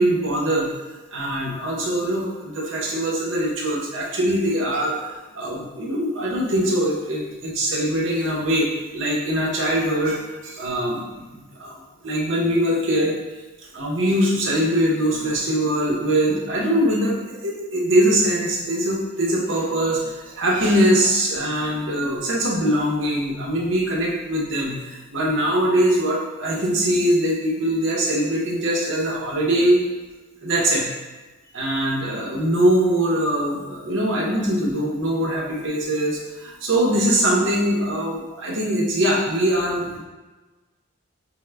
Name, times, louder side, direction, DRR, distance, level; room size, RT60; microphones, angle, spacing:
voice 1, 0.0-11.7 12.0-13.2 13.7-29.8 30.4-30.9 31.5-40.0, right 1 dB, 65° right, -3 dB, 0.9 m, -22 dB
4.5 x 2.1 x 3.3 m, 1.2 s
head